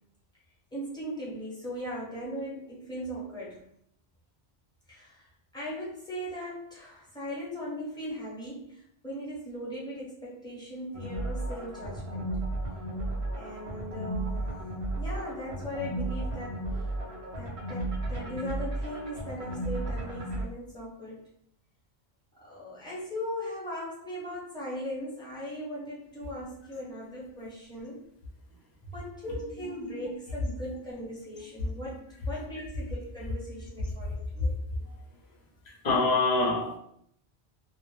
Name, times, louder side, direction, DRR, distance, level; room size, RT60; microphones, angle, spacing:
voice 1, 0.7-3.6 4.9-5.3 5.5-12.3 13.3-14.5 15.0-17.0 17.4-21.2 22.4-28.0 28.9-32.0 32.3-34.6, equal, 5° left, -7 dB, 0.7 m, -39 dB
sound 1, 10.9-20.4, right 1 dB, 45° right, 0.5 m, -34 dB
voice 2, 29.3-29.9 34.8-34.9 35.6-36.8, left 3 dB, 50° left, -1 dB, 0.6 m, -27 dB
2.0 x 2.0 x 3.0 m, 0.69 s
omnidirectional pair, 1.1 m